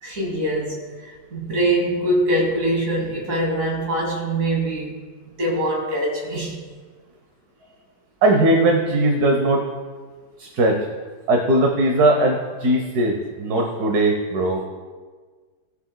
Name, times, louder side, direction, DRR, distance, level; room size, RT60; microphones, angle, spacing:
voice 1, 0.0-5.0 5.4-6.6, right 1 dB, 50° right, -2 dB, 2.5 m, -23 dB
voice 2, 8.2-9.6 10.4-10.8 11.3-14.6, right 1 dB, 65° right, 1 dB, 1.4 m, -19 dB
17.5 x 7.1 x 2.2 m, 1.5 s
omnidirectional pair, 1.8 m